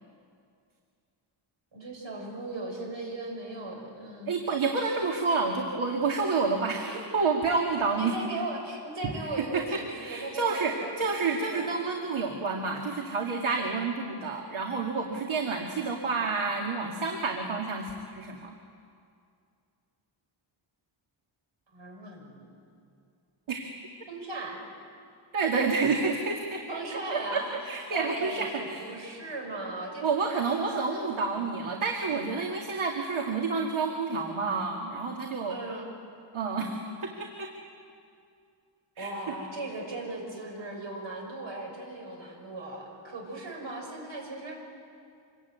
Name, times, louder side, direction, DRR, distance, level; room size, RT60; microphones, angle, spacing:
voice 1, 1.7-4.5 6.8-7.0 8.0-11.7 21.7-22.5 24.1-24.6 26.7-30.3 30.7-31.1 35.5-35.9 39.0-44.6, right 2 dB, 70° right, 1 dB, 6.6 m, -38 dB
voice 2, 4.3-8.2 9.0-9.1 9.4-18.6 23.5-23.7 25.3-26.6 27.1-28.8 30.0-35.5 36.3-37.5 39.0-39.1, right 4 dB, 90° right, 1 dB, 2.2 m, -29 dB
26.5 x 23.0 x 9.4 m, 2.4 s
wide cardioid pair, 145°, 47 cm